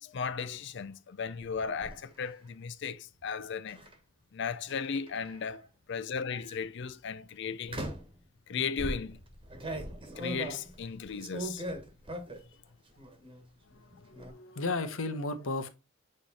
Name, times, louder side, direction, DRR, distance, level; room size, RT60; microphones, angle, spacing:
voice 1, 0.0-3.8 4.3-5.6 5.9-7.8 8.5-9.2 10.2-11.6, left 6 dB, 60° left, 0.5 m, -36 dB
sound 1, 1.4-2.0 3.7-3.9 4.7-5.5 6.3-6.6 7.7-8.2 8.8-12.5 12.9-13.4 13.7-14.3, right 1 dB, 25° right, 1.3 m, -40 dB
voice 2, 13.7-15.7, left 3 dB, 90° left, 1.1 m, -35 dB
8.1 x 3.3 x 4.1 m
head